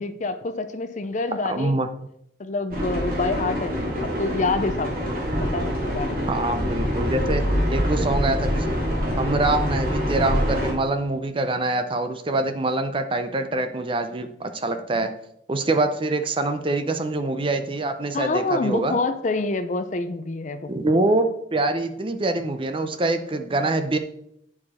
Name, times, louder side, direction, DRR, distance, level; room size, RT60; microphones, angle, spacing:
voice 1, 0.0-1.8 2.4-5.0 5.5-6.3 18.1-20.7, left 3 dB, 40° left, 11 dB, 0.5 m, -27 dB
voice 2, 1.5-1.9 6.3-8.8 9.2-15.1 15.5-19.0 20.7-24.0, right 2 dB, 30° right, 8 dB, 0.5 m, -25 dB
sound 1, 2.7-10.7, equal, 50° right, 2.0 m, -25 dB
8.5 x 4.8 x 4.2 m, 0.75 s
head